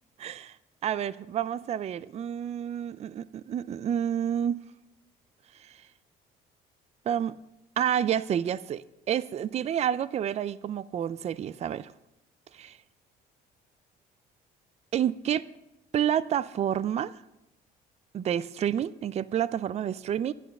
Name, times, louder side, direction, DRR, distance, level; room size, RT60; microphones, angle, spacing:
voice 1, 0.2-0.6 0.8-4.6 5.6-5.8 7.1-7.4 7.8-11.9 12.5-12.8 14.9-15.5 15.9-17.1 18.1-20.3, right 9 dB, 40° right, 18 dB, 0.4 m, -29 dB
11.5 x 11.0 x 6.6 m, 0.91 s
cardioid pair, 110°, 17 cm